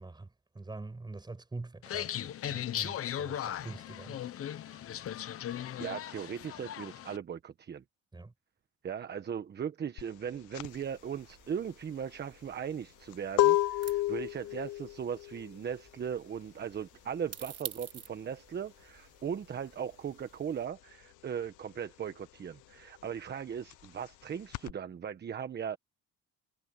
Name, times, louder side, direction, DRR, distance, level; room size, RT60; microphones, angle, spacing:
voice 1, 0.0-4.8 8.1-8.3, right 2 dB, 15° right, 6.3 m, -45 dB
sound 1, 1.8-7.2, left 10 dB, 50° left, 1.1 m, -38 dB
voice 2, 5.8-7.8 8.8-25.8, right 8 dB, 35° right, 1.2 m, -38 dB
sound 2, 10.0-20.2 20.5-24.7, left 15 dB, 80° left, 0.9 m, -33 dB
sound 3, 10.6-20.7, right 10 dB, 50° right, 4.6 m, -51 dB
cardioid pair, 130°, 30 cm